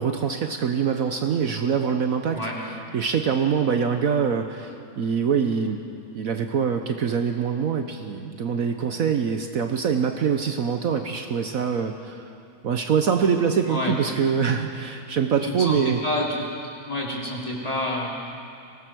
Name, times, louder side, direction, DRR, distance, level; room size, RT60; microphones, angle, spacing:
voice 1, 0.0-5.8 6.1-12.3 12.6-16.0, right 7 dB, 60° right, 5 dB, 1.3 m, -24 dB
voice 2, 13.6-14.0 15.4-16.3 16.9-18.1, left 1 dB, 20° left, -4 dB, 3.6 m, -28 dB
24.5 x 18.5 x 6.2 m, 2.5 s
omnidirectional pair, 1.7 m